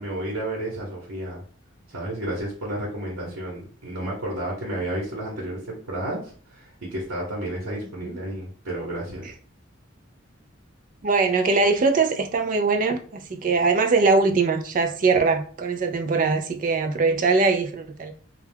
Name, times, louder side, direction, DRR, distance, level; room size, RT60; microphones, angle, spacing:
voice 1, 0.0-1.4 1.9-9.3, right 1 dB, 90° right, 0.9 m, -31 dB
voice 2, 11.0-18.1, right 4 dB, 40° right, 0.3 m, -22 dB
2.3 x 2.2 x 3.3 m
head